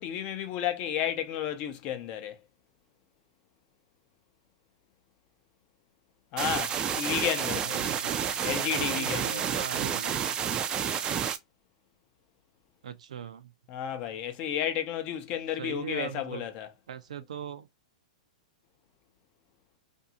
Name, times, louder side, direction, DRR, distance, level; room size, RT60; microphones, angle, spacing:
voice 1, 0.0-2.4 6.3-7.8 8.4-9.4 13.7-16.7, left 9 dB, 40° left, 0.5 m, -32 dB
sound 1, 6.4-11.4, right 8 dB, 25° right, 0.3 m, -30 dB
voice 2, 7.6-8.3 8.6-10.3 12.8-13.5 15.6-16.5 16.9-17.7, right 8 dB, 80° right, 0.4 m, -40 dB
2.6 x 2.4 x 2.7 m
hypercardioid pair, 130°, 4 cm